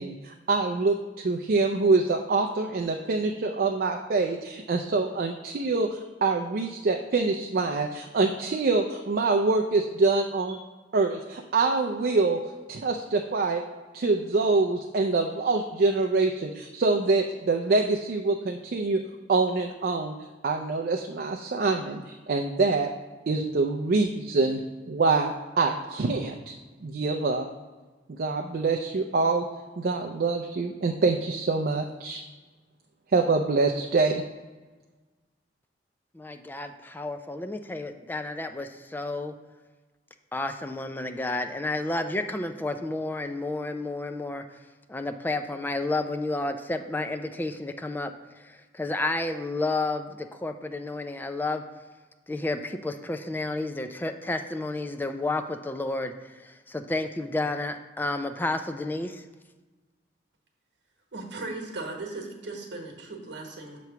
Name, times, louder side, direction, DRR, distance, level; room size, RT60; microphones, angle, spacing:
voice 1, 0.0-10.6 10.9-12.4 12.7-13.6 13.9-19.0 19.3-20.1 20.4-22.9 23.3-24.6 24.9-26.5 26.8-27.5 28.1-29.4 29.8-32.2 33.1-34.2, right 3 dB, 55° right, 4 dB, 0.4 m, -25 dB
voice 2, 36.1-39.3 40.3-44.6 44.9-51.6 52.3-59.2, left 2 dB, 10° left, 7 dB, 0.3 m, -31 dB
voice 3, 61.1-63.8, right 2 dB, 75° right, 2 dB, 1.2 m, -37 dB
6.7 x 3.1 x 5.8 m, 1.3 s
head